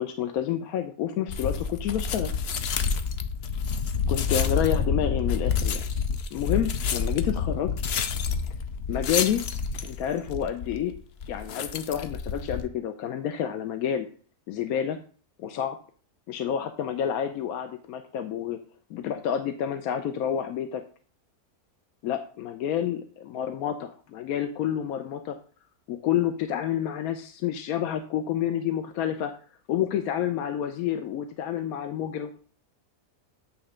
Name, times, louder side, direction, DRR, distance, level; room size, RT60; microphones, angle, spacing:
voice 1, 0.0-2.3 4.1-5.9 6.3-7.8 8.9-9.4 9.8-10.9 11.3-14.1 14.5-15.0 15.4-15.8 16.3-18.6 18.9-20.8 22.0-25.4 25.9-29.3 29.7-32.4, left 9 dB, 80° left, 7 dB, 1.1 m, -29 dB
sound 1, 1.3-12.7, left 6 dB, 60° left, 0.7 m, -28 dB
8.8 x 3.2 x 5.0 m, 0.42 s
omnidirectional pair, 1.5 m